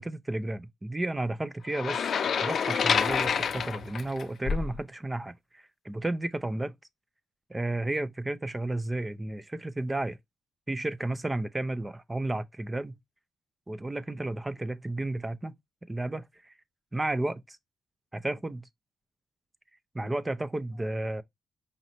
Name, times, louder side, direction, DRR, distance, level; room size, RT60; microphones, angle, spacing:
voice 1, 0.0-2.1 2.4-6.7 7.5-10.2 10.7-13.0 13.7-15.5 15.9-16.2 16.9-17.6 18.1-18.6 19.9-21.2, right 2 dB, 15° right, 0.5 m, -32 dB
sound 1, 1.7-4.8, left 7 dB, 55° left, 0.5 m, -28 dB
5.1 x 2.9 x 2.7 m
cardioid pair, 90°, 0 cm